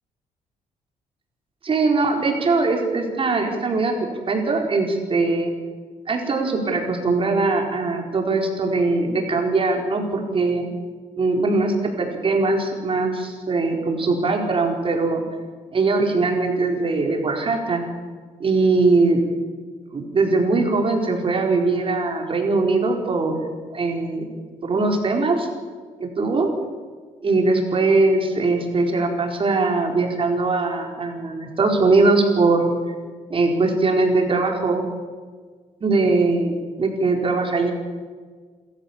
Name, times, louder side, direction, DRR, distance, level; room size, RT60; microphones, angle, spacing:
voice 1, 1.6-3.9 4.3-5.5 6.1-10.7 11.2-15.2 15.7-17.8 18.4-19.2 19.9-23.4 23.7-24.3 24.6-25.5 26.0-26.5 27.2-32.7 33.3-34.8 35.8-37.7, right 3 dB, 40° right, 2 dB, 4.5 m, -21 dB
27.0 x 14.0 x 7.3 m, 1.5 s
cardioid pair, 90°, 14 cm